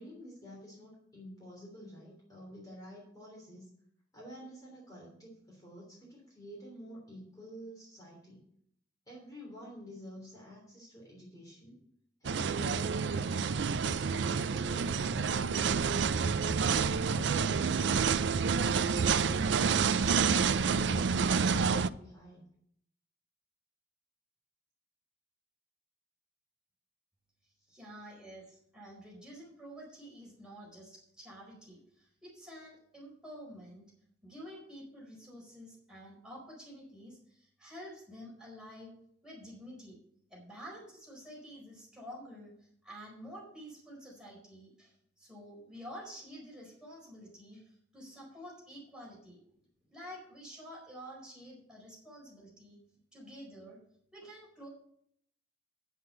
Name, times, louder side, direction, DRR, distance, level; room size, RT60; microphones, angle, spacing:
voice 1, 0.0-3.7 4.1-8.4 9.1-11.8 12.2-16.7 17.0-18.4 18.9-22.4, equal, 20° left, -3 dB, 3.3 m, -49 dB
sound 1, 12.2-21.9, right 5 dB, 80° right, 0.4 m, -28 dB
voice 2, 27.7-33.8 34.2-38.9 39.2-40.0 40.3-49.4 49.9-52.8 53.1-53.8 54.1-54.7, equal, 5° right, -5 dB, 4.5 m, -49 dB
9.3 x 7.9 x 6.6 m, 0.69 s
head